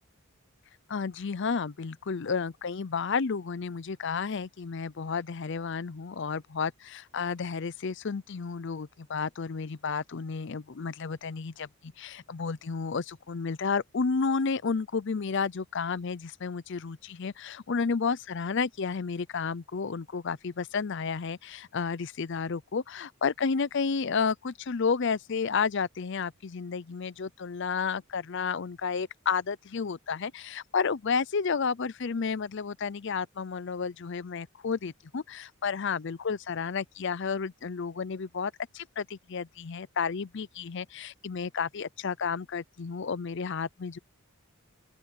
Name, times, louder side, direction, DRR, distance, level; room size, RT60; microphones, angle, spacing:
voice 1, 0.9-44.0, left 5 dB, 55° left, 0.5 m, -31 dB
open air
head